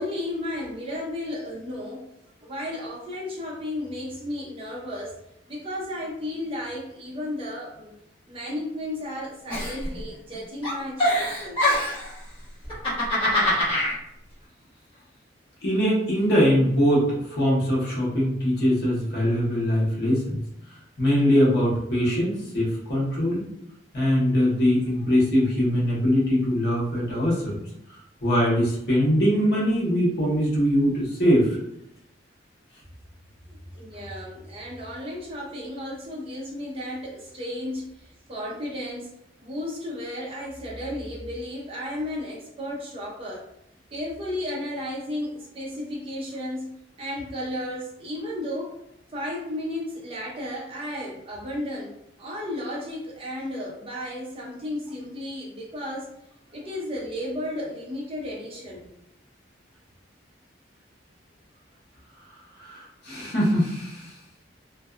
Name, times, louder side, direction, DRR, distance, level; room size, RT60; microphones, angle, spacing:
voice 1, 0.0-2.1 2.4-5.2 5.5-8.0 8.3-11.6 33.5-39.1 39.4-43.5 43.9-46.7 47.0-48.8 49.1-56.1 56.5-58.8, left 1 dB, 30° right, -3 dB, 0.5 m, -33 dB
Giggle, 9.5-10.3 10.6-12.1 12.6-13.9, left 1 dB, 25° left, 1.3 m, -24 dB
voice 2, 15.6-20.4 21.0-23.5 23.9-27.6 27.9-31.6 62.6-64.2, equal, 55° left, -6 dB, 1.0 m, -22 dB
2.6 x 2.2 x 2.4 m, 0.82 s
head